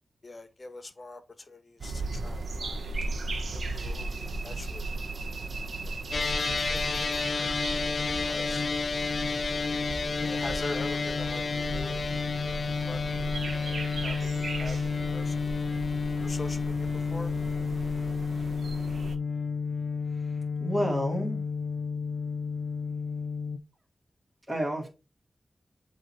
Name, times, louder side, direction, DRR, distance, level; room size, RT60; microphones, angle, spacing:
voice 1, 0.2-2.9 3.5-4.8 5.9-7.1 7.4-7.6 8.0-8.7 10.2-12.2 12.9-13.0 13.5-15.4 16.2-17.3, left 2 dB, 40° left, 1.1 m, -43 dB
sound 1, 1.8-19.2, right 2 dB, 80° right, 0.9 m, -37 dB
sound 2, 6.1-23.6, left 4 dB, 65° left, 0.5 m, -31 dB
voice 2, 20.1-21.4 24.5-24.9, equal, 25° right, 2.1 m, -30 dB
7.9 x 3.1 x 4.1 m
wide cardioid pair, 75°, 0 cm